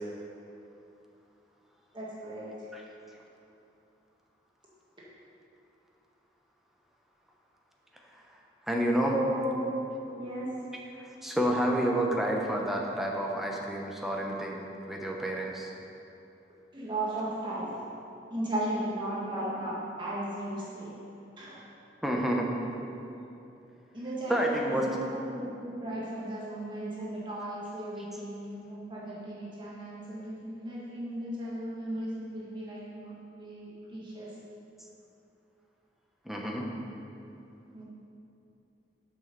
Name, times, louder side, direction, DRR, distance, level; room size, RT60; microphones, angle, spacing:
voice 1, 1.9-2.5 9.1-9.8 10.2-10.5 16.7-17.8 18.3-20.9 21.4-21.6 23.9-34.3 37.7-37.8, right 1 dB, 25° right, -7 dB, 1.8 m, -36 dB
voice 2, 8.7-9.2 11.0-15.7 22.0-22.5 24.3-25.0 28.0-28.1 36.3-36.7, right 1 dB, ahead, -1 dB, 0.9 m, -29 dB
7.7 x 6.3 x 6.7 m, 2.8 s
head